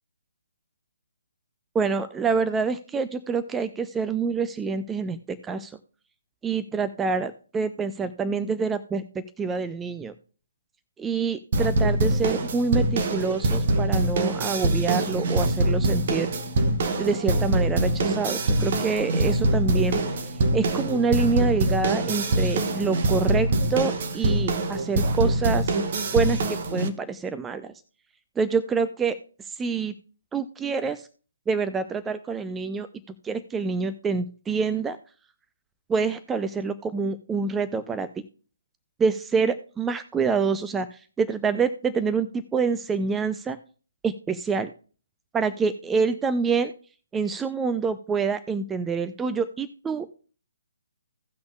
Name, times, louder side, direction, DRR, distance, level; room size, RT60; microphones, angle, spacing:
voice 1, 1.7-5.7 6.4-10.1 11.0-16.3 17.0-25.7 26.1-27.7 28.4-29.2 29.4-29.9 30.3-31.1 31.5-32.9 33.2-35.0 35.9-38.1 39.0-43.6 44.0-44.7 45.3-46.7 47.1-50.1, right 5 dB, 10° right, 11 dB, 0.4 m, -26 dB
sound 1, 11.5-26.9, right 1 dB, 45° right, 1.0 m, -24 dB
17.0 x 6.1 x 2.3 m, 0.39 s
figure-of-eight pair, 135°, 0 cm